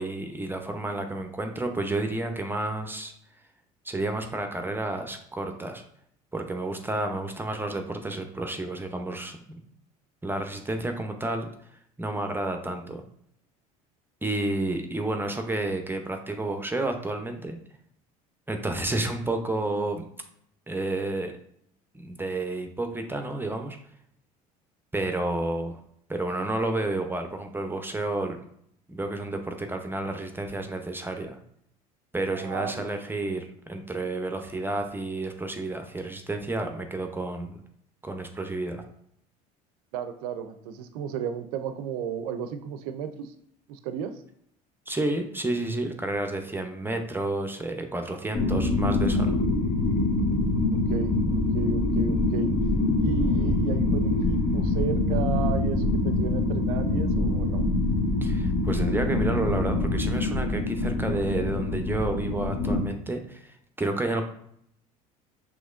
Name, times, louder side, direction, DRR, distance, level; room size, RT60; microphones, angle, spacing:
voice 1, 0.0-3.1 3.8-5.8 6.3-9.6 10.2-11.5 12.0-13.0 14.2-17.6 18.5-20.0 20.7-21.3 21.9-23.8 24.9-25.7 26.1-28.4 28.9-31.4 32.1-37.6 38.0-38.8 44.9-49.4 58.2-64.2, right 2 dB, 10° right, 5 dB, 0.7 m, -30 dB
voice 2, 32.3-32.9 39.9-43.3 43.7-44.2 50.9-52.5 53.0-57.6, right 7 dB, 75° right, 9 dB, 0.5 m, -33 dB
sound 1, 48.3-62.8, left 2 dB, 60° left, 1.3 m, -25 dB
6.1 x 3.1 x 2.5 m, 0.70 s
hypercardioid pair, 75°, 19 cm